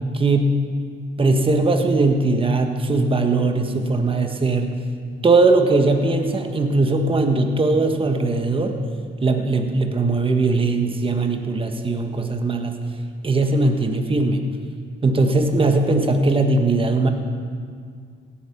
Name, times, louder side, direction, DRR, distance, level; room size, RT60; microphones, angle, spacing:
voice 1, 0.1-0.6 1.2-4.7 5.2-8.8 9.2-12.8 13.2-14.4 15.0-17.1, right 3 dB, 25° right, 5 dB, 1.4 m, -19 dB
16.5 x 8.7 x 5.9 m, 2.1 s
cardioid pair, 90°, 20 cm